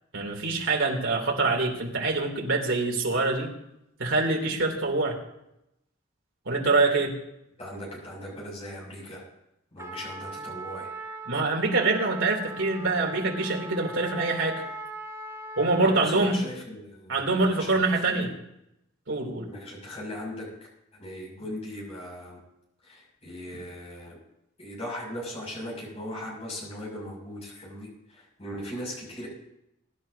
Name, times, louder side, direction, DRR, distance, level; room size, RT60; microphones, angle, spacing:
voice 1, 0.1-3.5 4.0-5.2 6.5-7.1 11.3-14.6 15.6-16.4 17.1-18.3 19.1-19.5, right 3 dB, 70° right, 0 dB, 3.1 m, -25 dB
voice 2, 7.6-9.2 9.7-10.9 15.8-18.3 19.5-20.5 20.9-22.4 22.8-24.2 24.6-29.3, equal, 30° left, -3 dB, 6.8 m, -39 dB
Trumpet, 9.8-16.4, right 2 dB, 15° right, 1.1 m, -40 dB
23.0 x 12.0 x 2.8 m, 0.82 s
head